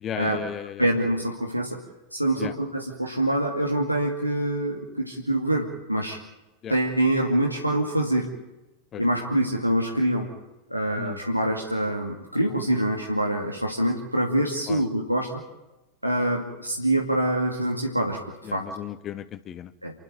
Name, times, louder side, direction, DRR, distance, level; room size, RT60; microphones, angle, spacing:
voice 1, 0.0-0.8 2.4-2.5 6.6-6.7 8.9-9.0 11.0-11.2 14.7-14.8 18.5-19.7, left 10 dB, 30° left, 14 dB, 0.9 m, -35 dB
voice 2, 0.8-1.8 2.1-6.2 6.7-8.3 9.0-10.3 10.7-15.4 16.0-18.7 19.8-19.9, right 1 dB, 90° right, 0 dB, 2.3 m, -25 dB
28.5 x 12.0 x 9.2 m, 1.0 s
figure-of-eight pair, 90°, 0 cm